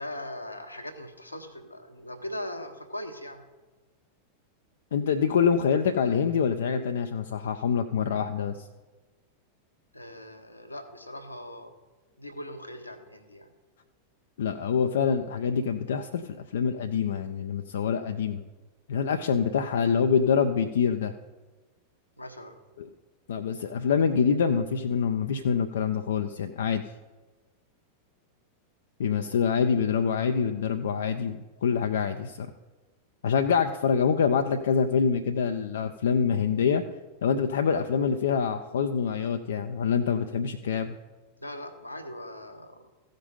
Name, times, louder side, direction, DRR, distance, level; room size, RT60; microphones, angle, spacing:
voice 1, 0.0-3.4 9.9-11.7 12.2-13.5 22.2-22.6 41.4-42.9, left 1 dB, 85° left, 5 dB, 1.0 m, -40 dB
voice 2, 4.9-8.7 14.4-18.4 18.9-21.1 22.8-22.9 23.3-26.8 29.0-32.5 33.2-36.8 37.2-41.0, left 6 dB, 60° left, 7 dB, 0.4 m, -25 dB
15.0 x 5.2 x 5.2 m, 1.2 s
figure-of-eight pair, 90°, 0 cm